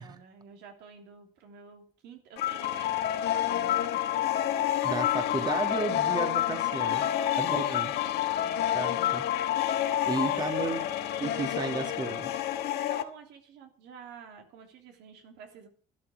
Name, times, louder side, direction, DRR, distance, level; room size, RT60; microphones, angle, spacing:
voice 1, 0.0-4.0 6.8-7.8 8.3-8.6 10.1-10.8 11.3-12.3 12.8-15.7, right 6 dB, 85° right, 4 dB, 3.2 m, -49 dB
sound 1, 2.4-13.0, left 12 dB, 80° left, 1.5 m, -28 dB
voice 2, 4.8-7.0 7.4-7.9 8.7-9.3 10.0-10.8 11.2-12.3, right 3 dB, 25° right, 7 dB, 1.7 m, -33 dB
12.5 x 11.5 x 6.1 m, 0.43 s
cardioid pair, 110°, 17 cm